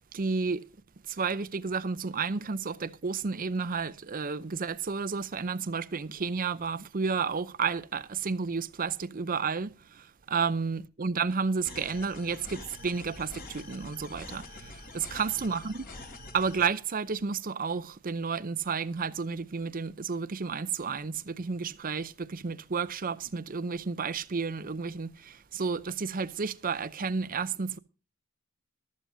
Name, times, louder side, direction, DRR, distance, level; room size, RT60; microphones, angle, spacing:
voice 1, 0.1-0.6 1.1-15.9 16.3-27.8, right 5 dB, 40° right, 0.6 m, -31 dB
sound 1, 11.6-16.6, left 2 dB, 45° left, 3.3 m, -45 dB
14.5 x 12.5 x 2.7 m
head